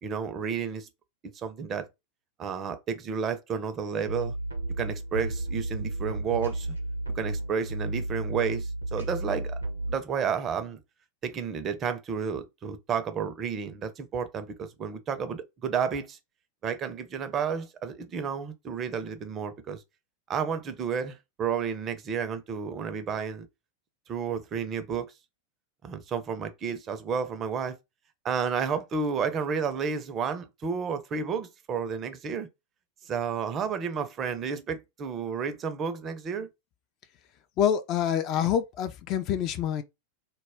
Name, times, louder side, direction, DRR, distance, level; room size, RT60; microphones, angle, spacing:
voice 1, 0.0-0.9 1.3-1.9 2.4-4.3 4.8-6.7 7.1-9.6 9.9-10.8 11.2-16.2 16.6-19.8 20.3-23.5 24.1-25.1 25.8-27.8 28.2-32.5 33.1-36.5, right 6 dB, 30° right, 0.4 m, -31 dB
sound 1, 4.1-10.0, right 2 dB, 90° right, 0.7 m, -33 dB
voice 2, 37.6-39.8, left 9 dB, 35° left, 0.3 m, -26 dB
2.2 x 2.1 x 3.4 m
figure-of-eight pair, 90°, 0 cm